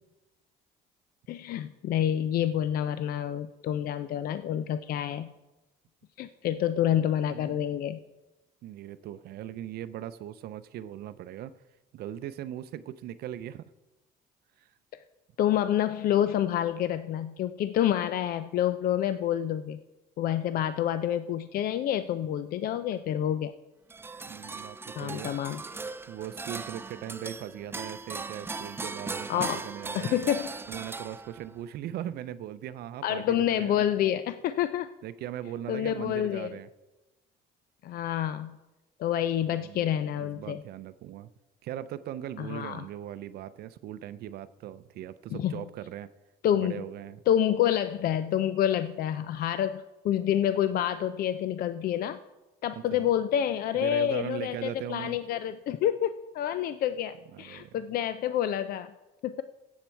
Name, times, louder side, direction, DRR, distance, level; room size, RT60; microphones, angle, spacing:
voice 1, 1.3-5.3 6.2-8.0 15.4-19.8 20.2-23.5 25.0-25.6 29.3-29.6 29.9-30.5 33.0-34.9 35.7-36.5 37.8-38.6 39.0-40.6 42.4-42.8 45.3-45.5 46.4-46.8 47.3-52.2 52.6-58.9 59.2-59.4, left 10 dB, 60° left, 12 dB, 0.5 m, -28 dB
voice 2, 7.3-7.7 8.6-11.6 11.9-13.7 14.6-14.7 24.2-25.3 26.1-30.2 30.7-33.9 35.0-36.7 39.4-41.3 41.6-46.1 46.5-47.2 52.7-53.1 53.7-55.2 57.3-57.8, right 11 dB, 70° right, 14 dB, 0.5 m, -39 dB
sound 1, 23.9-31.6, right 4 dB, 15° right, 0.4 m, -38 dB
16.5 x 7.3 x 4.5 m, 1.1 s
cardioid pair, 110°, 17 cm